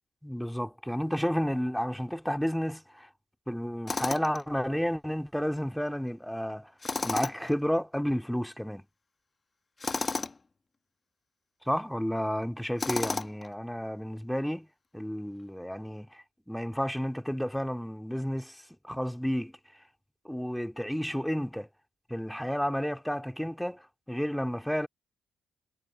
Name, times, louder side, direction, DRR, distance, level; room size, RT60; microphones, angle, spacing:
voice 1, 0.2-3.1 3.5-6.7 7.0-8.9 11.7-14.7 14.9-19.5 20.2-21.7 22.1-23.8 24.1-24.9, equal, ahead, 2.6 m, -31 dB
Tools, 3.9-4.4 6.8-7.5 9.8-10.4 12.8-13.5, left 3 dB, 30° left, 1.3 m, -32 dB
cardioid pair, 90°, 0 cm